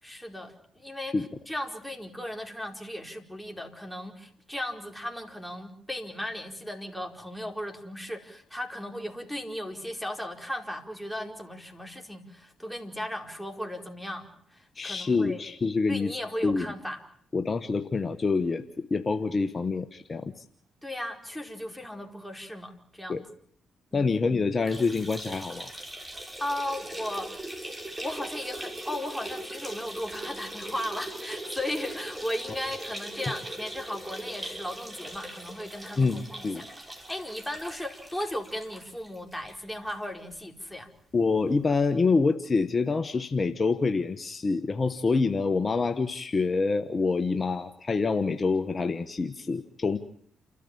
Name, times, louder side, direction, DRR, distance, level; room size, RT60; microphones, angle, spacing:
voice 1, 0.0-15.4 15.9-17.0 20.8-23.2 23.9-24.1 26.4-27.4 28.0-36.5 37.1-40.9, left 1 dB, 5° left, 3 dB, 4.8 m, -36 dB
voice 2, 14.7-16.1 16.4-16.7 17.3-20.4 23.1-23.2 23.9-25.7 36.0-36.6 41.1-50.0, left 4 dB, 40° left, 9 dB, 1.2 m, -26 dB
sound 1, 24.6-40.0 40.3-40.4 40.7-40.8 41.8-41.9, right 1 dB, 20° right, 6.4 m, -40 dB
29.5 x 13.5 x 8.9 m, 0.63 s
hypercardioid pair, 50°, 0 cm